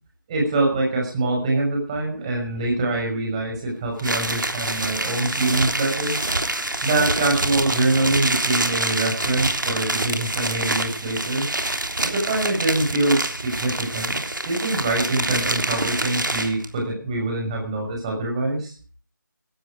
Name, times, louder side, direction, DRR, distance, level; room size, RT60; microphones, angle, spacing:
voice 1, 0.3-6.2 6.8-11.5 12.0-14.2 14.4-18.7, right 2 dB, 15° right, -1 dB, 6.0 m, -24 dB
sound 1, 4.0-16.7, right 2 dB, 70° right, 3.4 m, -26 dB
16.5 x 15.0 x 4.9 m, 0.41 s
figure-of-eight pair, 165°, 11 cm